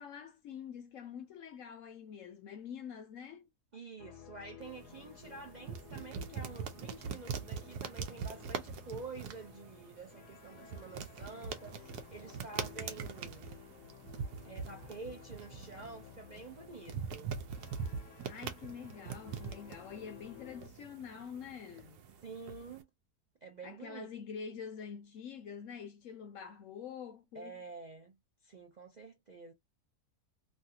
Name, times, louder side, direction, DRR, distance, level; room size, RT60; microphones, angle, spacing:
voice 1, 0.0-3.5 18.2-22.0 23.6-27.6, left 7 dB, 65° left, 1.0 m, -46 dB
voice 2, 3.7-13.5 14.4-17.3 22.2-22.9 23.4-24.1 27.3-28.2 28.4-29.5, right 3 dB, 50° right, 0.5 m, -48 dB
sound 1, 4.0-20.7, left 9 dB, 90° left, 1.4 m, -55 dB
sound 2, 4.6-22.8, right 6 dB, 90° right, 1.2 m, -43 dB
3.2 x 2.3 x 2.7 m
omnidirectional pair, 1.6 m